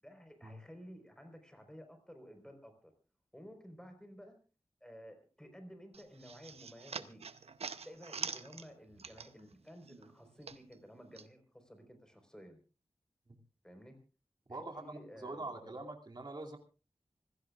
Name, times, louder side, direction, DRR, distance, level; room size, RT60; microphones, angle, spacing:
voice 1, 0.0-2.9 3.3-4.4 4.8-7.2 7.8-12.6 13.6-14.0 14.5-15.7, equal, 5° left, 6 dB, 4.4 m, -54 dB
sound 1, 5.9-9.6 9.9-11.3, right 5 dB, 85° right, 0.8 m, -45 dB
voice 2, 14.5-16.6, right 2 dB, 45° right, 1 dB, 2.6 m, -44 dB
26.0 x 16.0 x 2.4 m, 0.35 s
wide cardioid pair, 80°, 10 cm